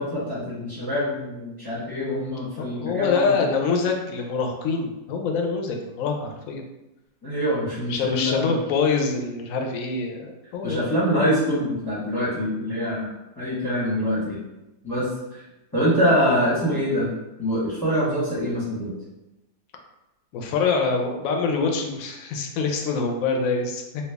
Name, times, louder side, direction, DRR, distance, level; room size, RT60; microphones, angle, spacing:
voice 1, 0.0-3.5 7.2-8.5 10.6-13.1 13.4-14.4 14.8-15.4 15.7-17.1 17.4-18.9, equal, 15° left, -10 dB, 0.9 m, -24 dB
voice 2, 2.6-6.7 7.9-10.8 20.3-23.8, left 4 dB, 70° left, 2 dB, 0.9 m, -25 dB
3.3 x 2.3 x 3.3 m, 0.98 s
omnidirectional pair, 1.7 m